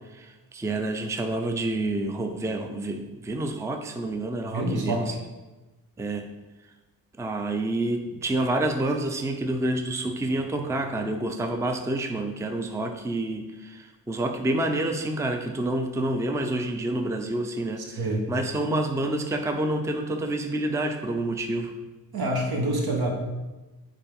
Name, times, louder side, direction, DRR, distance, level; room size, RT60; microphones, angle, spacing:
voice 1, 0.1-5.1 6.0-6.3 7.2-18.0 18.3-21.7, right 1 dB, 10° right, 5 dB, 0.5 m, -28 dB
voice 2, 4.5-5.2 17.9-18.3 22.1-23.1, right 1 dB, 80° right, -1 dB, 1.9 m, -26 dB
7.5 x 4.5 x 5.2 m, 1.1 s
wide cardioid pair, 135°, 36 cm